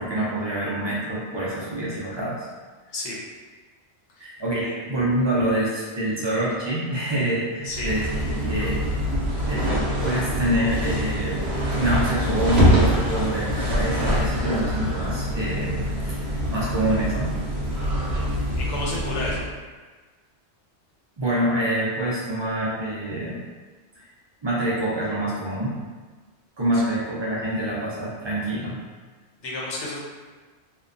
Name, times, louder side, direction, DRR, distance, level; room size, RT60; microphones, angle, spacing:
voice 1, 0.0-2.5 4.2-8.1 8.5-8.8 9.5-9.7 10.0-11.4 11.7-16.2 16.5-17.3 21.2-23.4 24.4-25.8 26.6-28.8, right 1 dB, 45° right, -7 dB, 0.3 m, -26 dB
sound 1, 7.7-19.4, equal, 70° right, 0.8 m, -24 dB
voice 2, 18.6-19.4 26.7-26.8 29.4-30.0, left 2 dB, 80° left, -5 dB, 1.0 m, -31 dB
2.8 x 2.1 x 2.5 m, 1.4 s
omnidirectional pair, 1.2 m